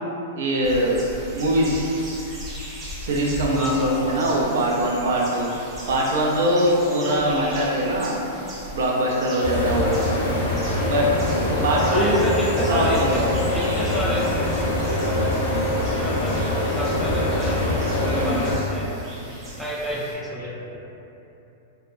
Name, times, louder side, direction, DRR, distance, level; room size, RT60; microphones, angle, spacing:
voice 1, 0.3-1.0 1.3-2.1 3.0-8.2 8.7-10.0 10.8-11.1 11.4-12.2 12.7-13.2 18.0-18.5, right 1 dB, 75° right, -2 dB, 0.5 m, -22 dB
sound 1, 0.6-20.1, equal, 20° right, 0.7 m, -39 dB
voice 2, 3.5-4.3 9.9-10.1 11.9-13.2 13.5-18.9 19.2-20.8, equal, ahead, -6 dB, 0.3 m, -31 dB
sound 2, 9.4-18.6, left 1 dB, 65° left, 0.7 m, -24 dB
2.7 x 2.1 x 2.5 m, 2.9 s
hypercardioid pair, 145°, 0 cm